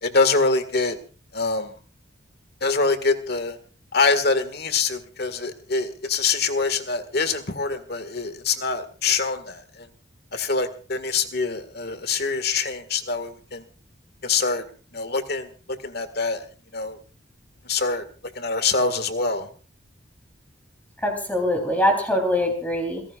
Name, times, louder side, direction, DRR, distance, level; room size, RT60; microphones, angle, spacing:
voice 1, 0.0-1.0 1.3-1.7 2.6-3.6 3.9-9.9 10.3-13.6 14.2-14.6 14.9-15.5 15.8-16.4 16.7-17.0 17.7-18.0 18.4-19.5, left 4 dB, 55° left, 10 dB, 1.9 m, -24 dB
voice 2, 21.0-23.0, left 1 dB, 10° left, 2 dB, 3.8 m, -23 dB
27.5 x 16.5 x 2.5 m, 0.38 s
head